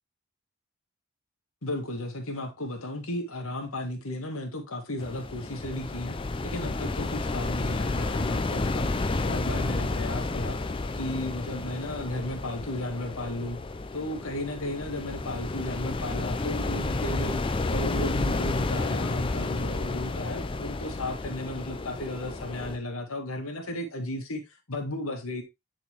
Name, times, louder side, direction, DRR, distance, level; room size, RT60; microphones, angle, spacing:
voice 1, 1.6-10.6 10.9-13.6 13.9-17.4 17.7-24.4 24.7-25.4, left 1 dB, 80° left, 1.8 m, -34 dB
sound 1, 5.0-22.8, left 3 dB, 25° left, 0.4 m, -31 dB
9.4 x 4.0 x 3.0 m
head